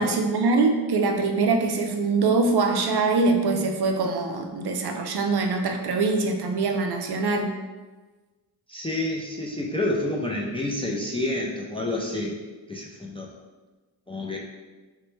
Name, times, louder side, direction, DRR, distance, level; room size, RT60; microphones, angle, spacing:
voice 1, 0.0-7.5, right 3 dB, 55° right, 3 dB, 0.5 m, -23 dB
voice 2, 8.7-12.4 12.7-13.3 14.1-14.4, left 1 dB, 15° left, -2 dB, 0.3 m, -29 dB
3.0 x 2.2 x 3.1 m, 1.3 s
cardioid pair, 60°, 47 cm